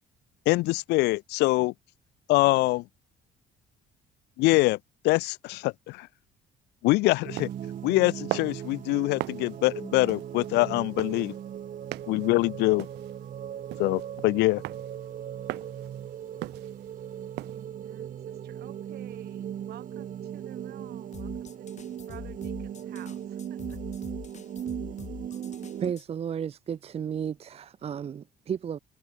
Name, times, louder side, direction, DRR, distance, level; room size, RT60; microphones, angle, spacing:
voice 1, 0.5-1.7 2.3-2.8 4.4-4.8 5.0-6.1 6.8-7.5 7.8-11.3 12.1-12.9 13.8-14.6, left 21 dB, 90° left, 0.8 m, -24 dB
sound 1, 7.2-25.9, right 9 dB, 50° right, 3.9 m, -38 dB
sound 2, 7.4-17.6, right 20 dB, 90° right, 3.5 m, -41 dB
voice 2, 17.5-23.8, right 14 dB, 70° right, 4.5 m, -51 dB
sound 3, 21.1-26.1, left 8 dB, 45° left, 5.5 m, -44 dB
voice 3, 25.8-28.8, right 8 dB, 35° right, 0.7 m, -33 dB
cardioid pair, 110°, 17 cm